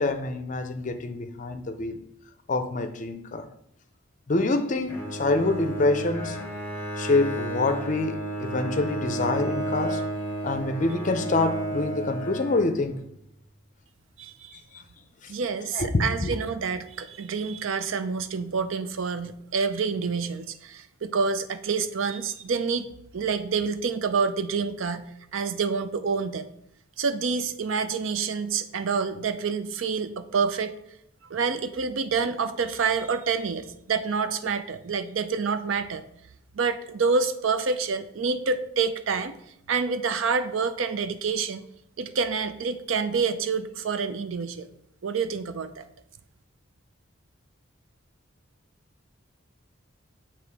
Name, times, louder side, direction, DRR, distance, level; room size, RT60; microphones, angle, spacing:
voice 1, 0.0-2.0 2.5-3.5 4.3-6.4 7.0-10.0 10.4-13.0 15.2-15.3 15.7-16.3, left 2 dB, 35° left, 0.5 m, -26 dB
Bowed string instrument, 4.9-13.1, right 2 dB, 10° left, 0.8 m, -32 dB
voice 2, 14.2-14.6 15.3-22.9 23.1-26.5 27.0-30.7 31.3-36.0 36.5-39.4 39.7-41.6 42.0-44.7 45.0-45.8, right 5 dB, 70° right, 0.5 m, -27 dB
6.8 x 3.0 x 4.6 m
head